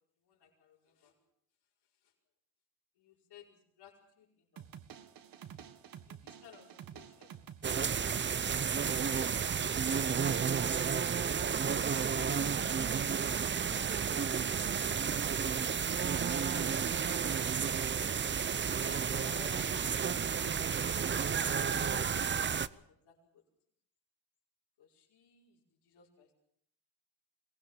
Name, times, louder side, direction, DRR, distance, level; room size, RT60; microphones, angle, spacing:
voice 1, 0.2-1.1 2.0-2.1 3.0-4.7 6.1-7.3 7.9-8.2 11.6-13.2 14.9-15.1 15.6-17.0 18.7-22.3 22.7-23.4 24.8-26.3, left 7 dB, 70° left, -3 dB, 5.2 m, -58 dB
sound 1, 4.6-10.0, right 9 dB, 55° right, 1.8 m, -51 dB
sound 2, 7.6-22.7, right 7 dB, 25° right, 0.8 m, -32 dB
23.0 x 18.0 x 7.3 m, 0.69 s
cardioid pair, 105°, 41 cm